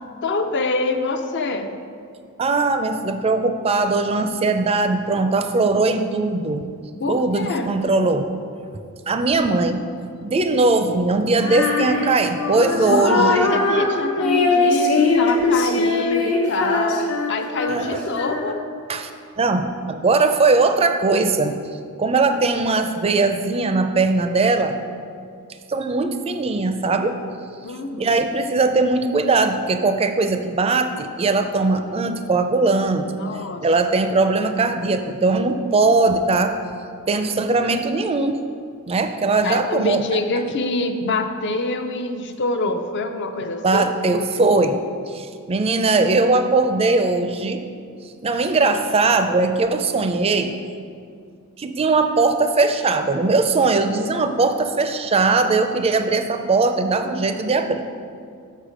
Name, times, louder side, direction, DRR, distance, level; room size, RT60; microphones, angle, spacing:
voice 1, 0.2-1.7 7.0-7.7 12.8-18.6 27.6-28.2 33.2-33.7 39.4-43.9, left 2 dB, 55° left, 6 dB, 0.6 m, -25 dB
voice 2, 2.4-6.6 7.1-8.3 9.1-9.8 10.2-13.5 17.7-17.9 18.9-19.1 19.4-21.6 22.0-24.8 25.7-27.2 28.0-33.1 33.6-36.6 37.1-38.4 38.9-40.0 43.6-47.6 48.2-50.5 51.6-57.9, right 3 dB, 25° right, 8 dB, 0.4 m, -20 dB
Female singing, 11.4-18.8, left 3 dB, 70° left, 1.1 m, -21 dB
6.6 x 6.4 x 5.0 m, 2.3 s
head